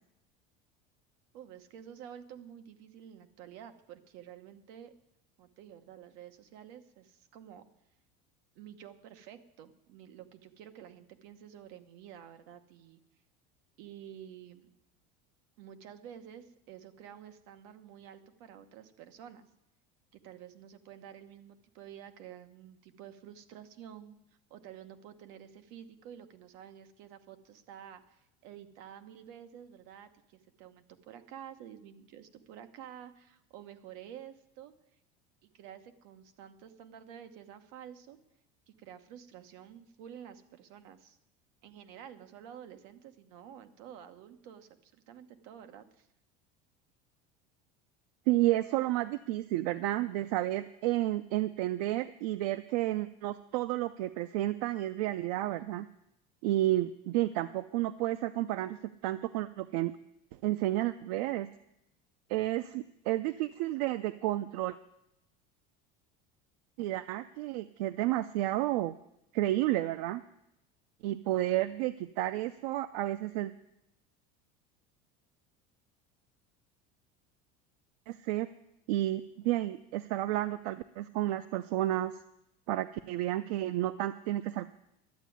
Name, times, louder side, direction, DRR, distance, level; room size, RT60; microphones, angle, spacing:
voice 1, 1.3-4.9 5.4-7.6 8.5-13.0 13.8-14.7 15.6-19.5 20.1-24.2 24.5-34.7 35.4-38.2 38.7-41.2 41.6-46.1, right 9 dB, 55° right, 9 dB, 1.1 m, -50 dB
voice 2, 48.3-55.9 56.4-59.9 60.4-61.5 62.3-64.8 66.8-68.9 69.3-70.2 71.0-73.5 78.1-78.5 78.9-82.1 82.7-84.7, right 15 dB, 70° right, 14 dB, 0.5 m, -31 dB
11.5 x 8.3 x 9.2 m, 0.84 s
cardioid pair, 180°, 20 cm